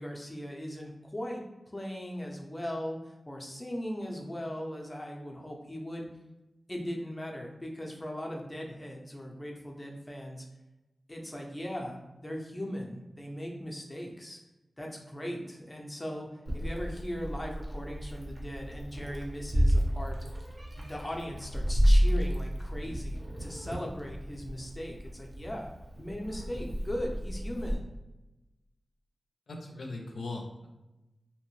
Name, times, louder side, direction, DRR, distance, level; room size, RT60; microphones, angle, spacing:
voice 1, 0.0-6.1 6.7-10.5 11.1-14.4 14.8-20.2 20.8-25.7 26.0-27.9, equal, 15° left, -1 dB, 0.5 m, -39 dB
Meow, 16.4-27.7, equal, 35° right, 0.7 m, -30 dB
voice 2, 29.5-30.7, left 2 dB, 85° left, 1 dB, 0.4 m, -39 dB
2.7 x 2.0 x 3.0 m, 1.0 s
wide cardioid pair, 90°, 0 cm